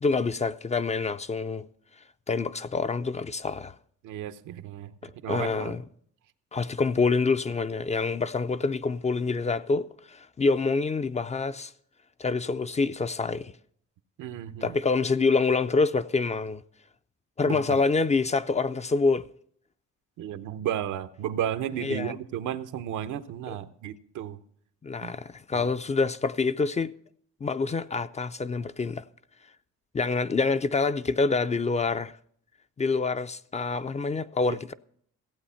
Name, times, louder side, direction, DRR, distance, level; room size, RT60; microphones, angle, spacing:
voice 1, 0.0-1.7 2.3-3.8 5.0-5.8 6.5-11.7 12.2-13.5 14.6-16.6 17.4-19.3 21.8-22.1 24.8-26.9 27.4-29.0 29.9-32.1 32.8-34.7, left 4 dB, 25° left, 0.4 m, -26 dB
voice 2, 4.0-5.8 14.2-14.7 17.4-17.8 20.2-24.4 25.0-25.1 25.5-25.7 34.5-34.6, right 10 dB, 85° right, 0.8 m, -33 dB
15.5 x 8.2 x 5.7 m
cardioid pair, 90°, 30 cm